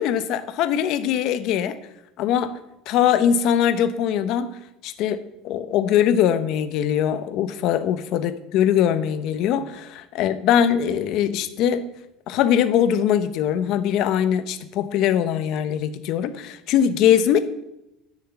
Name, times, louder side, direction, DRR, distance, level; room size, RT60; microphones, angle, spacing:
voice 1, 0.0-1.8 2.2-2.6 2.9-4.5 4.8-11.9 12.3-17.4, left 9 dB, 50° left, 11 dB, 1.0 m, -21 dB
10.5 x 6.5 x 9.0 m, 0.86 s
cardioid pair, 155°, 0 cm